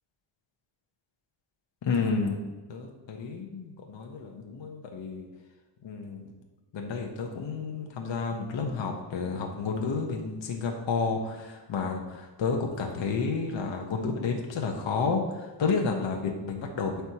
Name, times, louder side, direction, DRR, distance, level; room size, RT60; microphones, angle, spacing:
voice 1, 1.8-2.4 2.7-5.3 5.8-6.3 6.7-17.1, left 4 dB, 65° left, 2 dB, 1.1 m, -31 dB
11.5 x 4.7 x 3.0 m, 1.2 s
wide cardioid pair, 155°, 49 cm